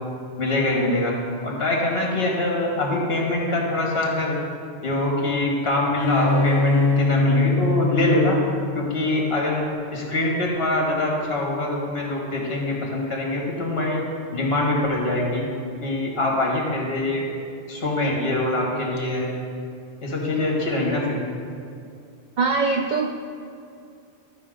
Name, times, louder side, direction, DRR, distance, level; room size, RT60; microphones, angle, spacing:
voice 1, 0.4-1.1 1.4-4.4 4.8-8.4 8.7-9.6 9.9-14.0 14.3-15.4 15.8-17.2 17.7-19.3 20.0-21.2, left 2 dB, 50° left, -2 dB, 1.9 m, -24 dB
Bowed string instrument, 6.0-9.6, left 3 dB, 35° left, 0.4 m, -23 dB
voice 2, 22.4-23.2, right 4 dB, 80° right, 3 dB, 0.4 m, -22 dB
12.5 x 5.6 x 3.8 m, 2.5 s
omnidirectional pair, 1.3 m